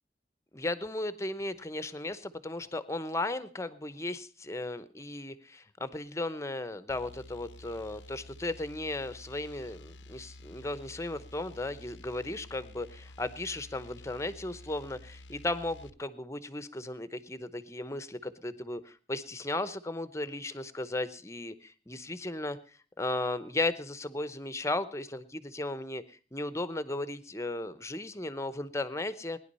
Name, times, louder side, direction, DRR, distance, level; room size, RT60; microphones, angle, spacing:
voice 1, 0.5-22.6 23.0-29.4, left 2 dB, 15° left, 14 dB, 0.9 m, -36 dB
sound 1, 6.9-16.0, left 2 dB, 90° left, 0.8 m, -51 dB
20.0 x 10.5 x 5.5 m, 0.40 s
head